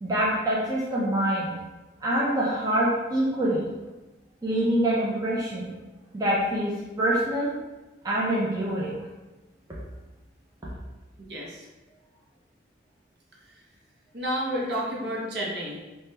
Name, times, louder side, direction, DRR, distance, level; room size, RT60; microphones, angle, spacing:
voice 1, 0.0-1.5 2.0-3.6 4.4-5.7 6.1-7.5 8.0-8.9, right 1 dB, 20° right, -6 dB, 0.4 m, -25 dB
voice 2, 11.2-11.7 13.4-13.6 14.1-15.8, equal, 60° right, -3 dB, 0.7 m, -31 dB
3.0 x 2.2 x 3.2 m, 1.1 s
head